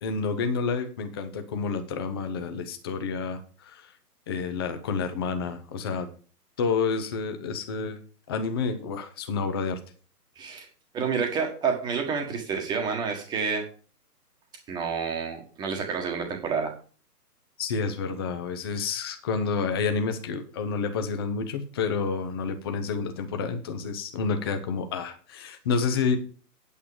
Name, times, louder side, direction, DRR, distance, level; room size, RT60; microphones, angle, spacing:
voice 1, 0.0-3.9 4.3-6.1 6.6-8.0 8.3-9.8 17.6-26.2, left 5 dB, 15° left, 7 dB, 0.8 m, -29 dB
voice 2, 10.4-10.7 10.9-13.6 14.7-16.7, right 6 dB, 10° right, 3 dB, 1.4 m, -29 dB
8.8 x 8.7 x 4.9 m, 0.39 s
hypercardioid pair, 155°, 47 cm